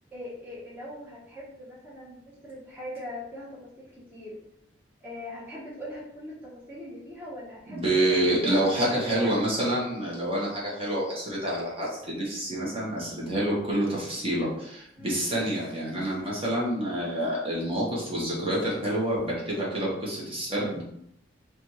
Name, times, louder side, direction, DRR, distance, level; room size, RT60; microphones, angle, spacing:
voice 1, 0.1-4.4 5.0-8.0 8.4-9.4 14.9-15.2 16.1-16.4, left 1 dB, 10° right, -8 dB, 1.1 m, -41 dB
voice 2, 7.7-20.8, right 1 dB, 30° right, -5 dB, 1.2 m, -27 dB
3.4 x 3.3 x 3.1 m, 0.76 s
head